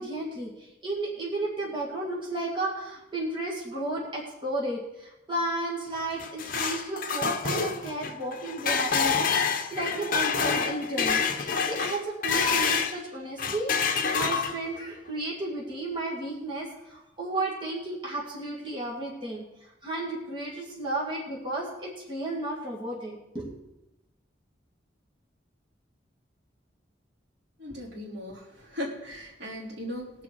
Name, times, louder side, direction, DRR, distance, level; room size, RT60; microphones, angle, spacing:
voice 1, 0.0-23.5, right 2 dB, 25° right, -4 dB, 2.3 m, -33 dB
sound 1, 6.0-13.0 13.4-14.8, left 6 dB, 50° left, 0.9 m, -27 dB
voice 2, 27.6-30.2, left 1 dB, 65° right, -4 dB, 3.4 m, -38 dB
20.5 x 7.0 x 4.7 m, 0.93 s
head